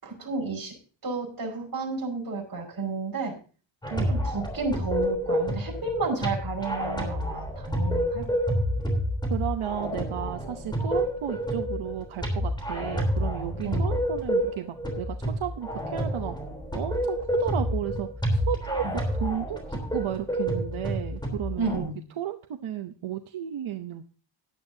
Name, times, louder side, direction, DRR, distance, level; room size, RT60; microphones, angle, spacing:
voice 1, 0.0-0.7 1.0-3.3 4.1-8.2 13.6-13.9 18.8-19.0 21.6-22.0, right 3 dB, 45° right, 0 dB, 5.2 m, -31 dB
sound 1, 3.8-21.8, equal, 10° left, 3.4 m, -29 dB
voice 2, 9.3-16.3 16.7-18.9 19.2-21.9 22.2-24.0, right 10 dB, 85° right, 6 dB, 0.9 m, -33 dB
16.5 x 10.5 x 2.7 m, 0.37 s
wide cardioid pair, 155°, 48 cm